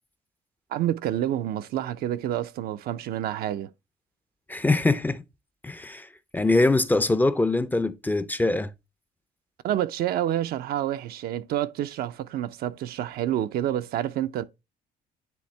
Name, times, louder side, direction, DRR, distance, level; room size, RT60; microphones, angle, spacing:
voice 1, 0.7-3.7 9.6-14.4, right 12 dB, 65° right, 0.5 m, -28 dB
voice 2, 4.5-5.2 5.6-8.7, left 2 dB, 10° left, 0.4 m, -23 dB
10.0 x 3.6 x 3.2 m
cardioid pair, 110°, 17 cm